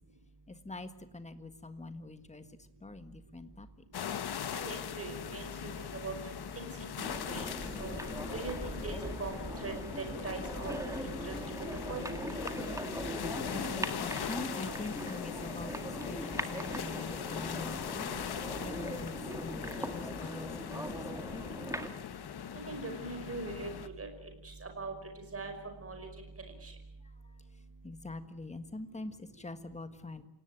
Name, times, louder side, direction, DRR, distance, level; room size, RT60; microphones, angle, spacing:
voice 1, 0.5-2.4 2.8-3.7 13.5-18.1 18.6-19.1 19.4-21.7 27.8-30.2, left 2 dB, 15° left, 10 dB, 1.6 m, -44 dB
sound 1, 3.9-23.9, left 8 dB, 60° left, 1.4 m, -40 dB
voice 2, 4.3-6.1 6.6-7.5 7.8-8.0 8.3-10.8 11.2-11.4 11.9-12.2 22.7-23.7 24.0-24.1 24.4-24.9 25.3-25.5 25.8-26.1 26.6-26.7, right 3 dB, 35° right, 5 dB, 5.4 m, -41 dB
sound 2, 7.0-21.9, right 1 dB, 5° right, 2.0 m, -40 dB
28.0 x 18.0 x 9.2 m, 0.80 s
wide cardioid pair, 175°, 43 cm